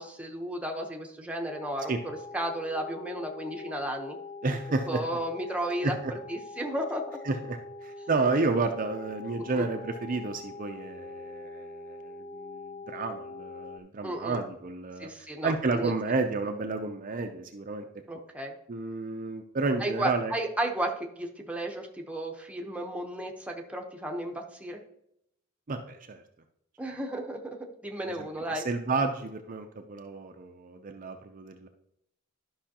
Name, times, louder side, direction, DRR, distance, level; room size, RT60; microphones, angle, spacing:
voice 1, 0.0-4.2 4.9-6.0 6.3-7.2 9.4-9.7 14.0-14.4 15.0-16.0 18.1-18.5 19.8-24.8 26.8-27.6 27.8-28.6, right 1 dB, 5° right, 1 dB, 0.9 m, -33 dB
sound 1, 1.5-13.8, left 3 dB, 25° left, 0.4 m, -44 dB
voice 2, 4.4-5.0 5.8-6.1 7.2-15.1 15.4-17.8 18.7-20.3 25.7-26.2 28.0-31.7, right 3 dB, 40° right, 5 dB, 0.5 m, -31 dB
12.5 x 5.6 x 2.9 m, 0.77 s
head